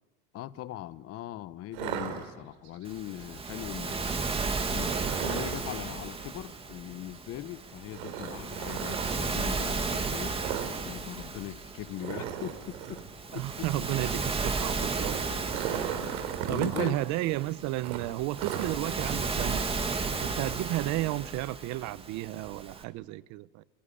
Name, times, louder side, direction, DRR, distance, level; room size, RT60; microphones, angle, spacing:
voice 1, 0.3-4.2 4.7-10.4 10.8-13.0 13.3-13.9 15.8-16.0 16.5-17.0, left 13 dB, 45° left, 1.0 m, -40 dB
sound 1, 1.7-2.8 4.8-5.7 7.9-9.1 10.4-10.8 11.0-11.2 11.5-11.6 12.0-13.1 14.7-16.9 17.2-17.3 17.8-19.0, right 10 dB, 85° right, 3.6 m, -36 dB
Waves surf, 2.9-22.8, right 4 dB, 15° right, 2.2 m, -34 dB
voice 2, 13.3-15.5 16.5-19.7 20.2-23.6, right 17 dB, 55° right, 0.8 m, -32 dB
26.0 x 23.0 x 9.9 m
supercardioid pair, 130°, 33 cm